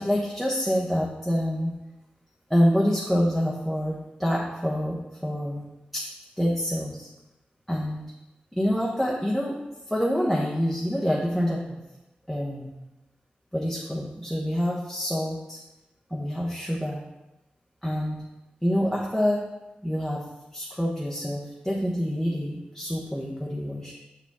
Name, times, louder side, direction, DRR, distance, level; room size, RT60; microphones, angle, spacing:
voice 1, 0.0-1.7 2.5-6.1 6.4-7.1 7.7-8.0 8.5-9.6 9.9-11.8 12.3-12.7 13.5-15.6 16.1-17.1 17.8-18.2 18.6-19.5 19.8-20.3 20.5-23.9, equal, ahead, -4 dB, 0.9 m, -26 dB
6.9 x 4.9 x 3.5 m, 0.98 s
wide cardioid pair, 105°, 3 cm